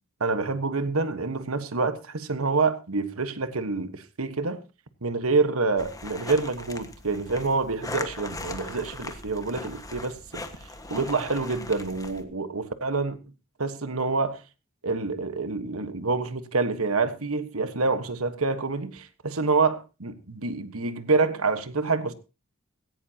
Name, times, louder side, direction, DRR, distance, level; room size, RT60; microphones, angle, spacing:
voice 1, 0.2-4.6 5.0-10.4 10.9-13.2 13.6-14.4 14.8-22.1, right 3 dB, 85° right, 1.4 m, -27 dB
sound 1, 5.8-12.2, left 2 dB, 15° left, 1.5 m, -39 dB
17.0 x 16.5 x 2.9 m
head